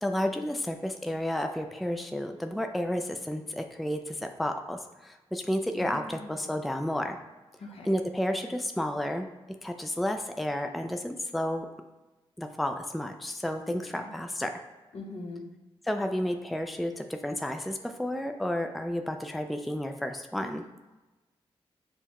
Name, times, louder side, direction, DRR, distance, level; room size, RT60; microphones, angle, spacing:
voice 1, 0.0-7.2 7.8-9.3 9.6-11.7 12.4-14.5 15.9-20.6, left 1 dB, ahead, 6 dB, 0.3 m, -31 dB
voice 2, 5.8-6.5 7.6-7.9 13.7-14.1 14.9-15.5, left 2 dB, 65° left, 2 dB, 0.7 m, -42 dB
5.6 x 2.1 x 2.9 m, 1.1 s
cardioid pair, 50°, 11 cm